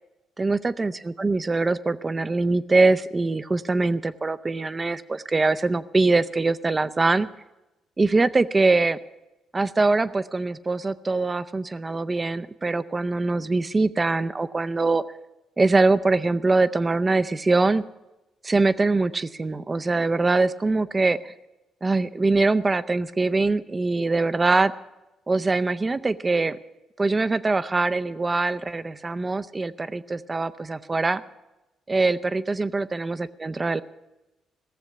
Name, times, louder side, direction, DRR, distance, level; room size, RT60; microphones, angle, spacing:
voice 1, 0.4-7.3 8.0-9.0 9.5-15.0 15.6-17.8 18.4-21.3 21.8-24.7 25.3-26.6 27.0-31.2 31.9-33.8, right 3 dB, 25° right, 13 dB, 0.6 m, -23 dB
17.0 x 7.2 x 9.5 m, 1.0 s
cardioid pair, 90°, 0 cm